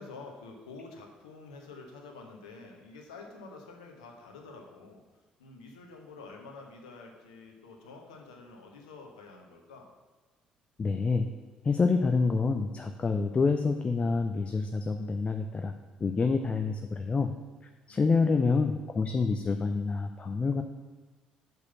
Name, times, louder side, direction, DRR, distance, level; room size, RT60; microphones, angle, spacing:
voice 1, 0.0-5.0 5.4-9.9 17.9-18.7, left 3 dB, 80° left, 2 dB, 1.1 m, -48 dB
voice 2, 10.8-11.3 11.6-15.7 16.0-17.3 17.9-20.6, left 4 dB, 30° left, 6 dB, 0.6 m, -27 dB
6.2 x 5.3 x 6.9 m, 1.3 s
figure-of-eight pair, 50°, 4 cm